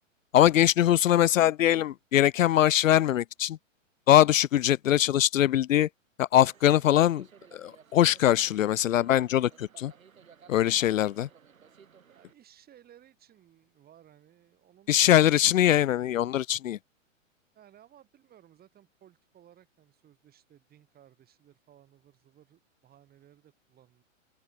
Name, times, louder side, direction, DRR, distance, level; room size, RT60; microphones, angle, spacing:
voice 1, 0.3-3.6 4.1-5.9 6.2-7.3 7.5-9.9 10.5-11.3 14.9-16.8, left 12 dB, 75° left, 0.8 m, -22 dB
sound 1, 6.3-12.3, right 7 dB, 90° right, 3.5 m, -56 dB
voice 2, 12.1-15.4 17.5-24.0, right 11 dB, 25° right, 7.4 m, -59 dB
hypercardioid pair, 130°, 40 cm